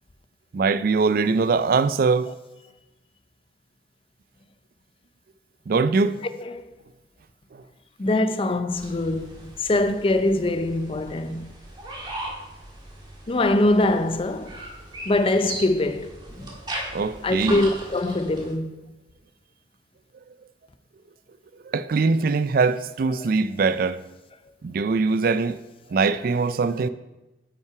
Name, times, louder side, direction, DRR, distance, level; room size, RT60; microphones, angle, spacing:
voice 1, 0.5-2.3 5.7-6.2 7.5-7.6 16.9-17.6 21.6-24.0 24.6-25.6 25.9-26.9, right 4 dB, 55° right, 0.4 m, -22 dB
voice 2, 6.4-6.7 8.0-11.5 13.3-14.6 15.1-16.5 17.2-18.8, left 2 dB, 30° left, 0.5 m, -23 dB
sound 1, 8.7-18.5, right 1 dB, 25° right, 1.8 m, -38 dB
9.3 x 5.7 x 4.7 m
head